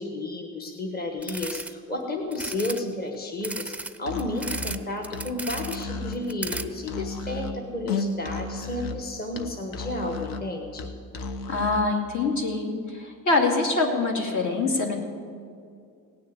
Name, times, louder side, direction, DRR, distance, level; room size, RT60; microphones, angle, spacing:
voice 1, 0.0-3.7 4.0-10.9, left 2 dB, 25° left, 2 dB, 1.3 m, -32 dB
sound 1, 1.2-1.7 2.3-2.8 3.4-4.8 5.0-5.8 6.1-6.6, right 2 dB, 5° right, 0.5 m, -34 dB
Musical instrument, 4.0-12.0, left 3 dB, 75° left, 1.1 m, -34 dB
voice 2, 11.5-14.9, left 3 dB, 60° left, 1 dB, 2.4 m, -24 dB
17.5 x 6.5 x 9.5 m, 2.3 s
cardioid pair, 130°, 34 cm